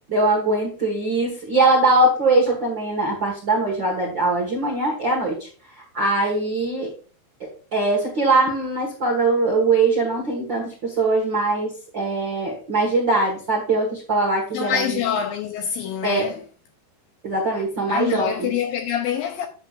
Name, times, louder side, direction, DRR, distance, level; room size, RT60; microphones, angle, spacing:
voice 1, 0.1-5.5 5.8-6.9 7.4-15.0 16.0-16.3 17.2-18.5, right 2 dB, 55° right, 1.2 m, -21 dB
voice 2, 14.5-16.4 17.9-19.5, left 9 dB, 80° left, 2.2 m, -25 dB
8.8 x 7.0 x 2.5 m
omnidirectional pair, 4.7 m